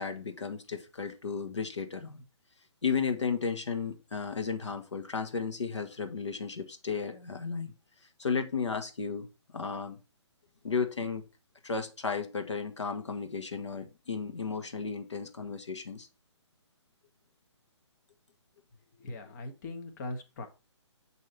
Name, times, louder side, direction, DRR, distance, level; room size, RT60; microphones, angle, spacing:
voice 1, 0.0-2.2 2.8-7.7 8.2-9.3 9.5-10.0 10.6-11.3 11.6-16.1, left 5 dB, 70° left, 1.1 m, -34 dB
voice 2, 19.0-20.5, left 2 dB, 35° left, 0.9 m, -40 dB
7.4 x 2.8 x 4.6 m
figure-of-eight pair, 135°, 15 cm